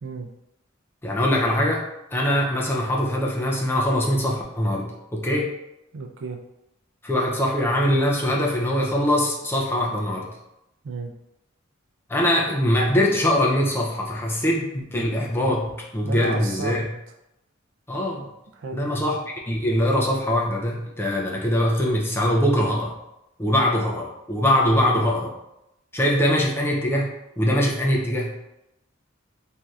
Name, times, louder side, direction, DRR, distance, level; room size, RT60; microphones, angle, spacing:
voice 1, 1.0-1.8 2.1-5.5 7.0-10.3 12.1-16.9 17.9-18.3 18.7-19.2 19.5-23.0 23.4-25.3 25.9-27.1 27.4-28.3, equal, 10° left, -2 dB, 0.4 m, -22 dB
voice 2, 5.9-6.4 10.8-11.1 16.0-16.8 18.1-18.3 18.5-18.8, right 3 dB, 65° right, 2 dB, 0.4 m, -32 dB
3.2 x 2.6 x 2.3 m, 0.87 s
head